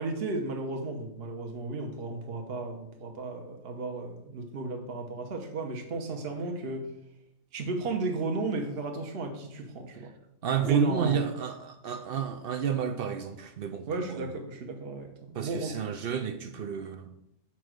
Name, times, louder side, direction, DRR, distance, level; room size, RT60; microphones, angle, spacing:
voice 1, 0.0-6.9 7.5-10.1 10.6-11.3 13.9-15.7, right 3 dB, 50° right, 3 dB, 1.0 m, -34 dB
voice 2, 10.4-14.3 15.3-17.1, right 8 dB, 65° right, 9 dB, 0.5 m, -30 dB
5.9 x 4.5 x 6.3 m, 0.81 s
omnidirectional pair, 1.5 m